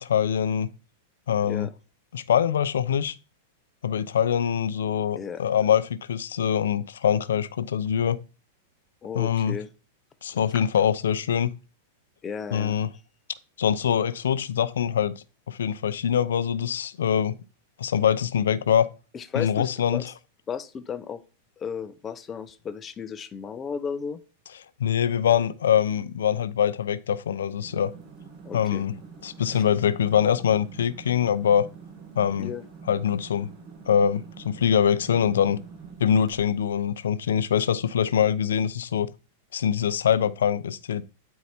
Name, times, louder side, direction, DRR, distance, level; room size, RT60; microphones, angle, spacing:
voice 1, 0.0-0.7 1.3-1.7 2.1-3.2 3.8-8.2 9.1-9.6 10.2-11.5 12.5-12.9 13.6-17.4 17.8-18.9 19.3-20.0 24.8-27.9 28.5-28.9 29.2-31.7 32.2-32.5 32.9-33.5 33.9-35.6 36.0-39.1 39.5-41.0, left 8 dB, 85° left, 0.5 m, -24 dB
voice 2, 9.0-9.7 12.2-12.8 19.1-20.0 20.5-21.2 21.6-24.2 28.4-28.8 29.5-29.6 32.4-32.6, left 6 dB, 25° left, 0.7 m, -34 dB
sound 1, 27.5-36.7, right 5 dB, 30° right, 2.1 m, -46 dB
9.3 x 4.7 x 4.3 m
hypercardioid pair, 125°, 0 cm